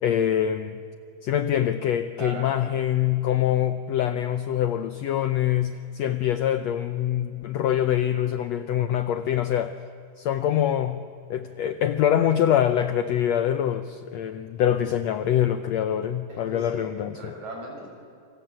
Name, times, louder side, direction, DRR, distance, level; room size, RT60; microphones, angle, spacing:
voice 1, 0.0-0.8 1.2-9.7 10.2-11.0 11.3-17.3, left 10 dB, 80° left, 10 dB, 1.5 m, -24 dB
voice 2, 2.2-2.7 16.3-16.9 17.1-17.9, right 2 dB, 55° right, 0 dB, 8.0 m, -38 dB
27.0 x 25.0 x 7.5 m, 2.6 s
omnidirectional pair, 4.0 m